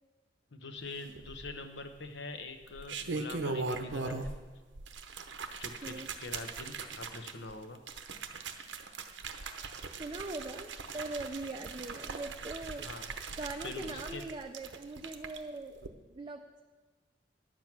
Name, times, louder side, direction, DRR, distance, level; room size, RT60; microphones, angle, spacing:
voice 1, 0.5-4.3 5.6-7.8 12.8-13.4 13.6-14.2, left 2 dB, 75° left, 7 dB, 1.0 m, -44 dB
sound 1, 1.2-1.8 2.6-4.5 4.8-15.4 15.8-15.9, right 4 dB, 90° right, 0.8 m, -40 dB
voice 2, 10.0-12.9 13.4-15.8 16.1-16.6, right 2 dB, 25° right, 4 dB, 0.4 m, -41 dB
11.0 x 7.6 x 6.0 m, 1.3 s
head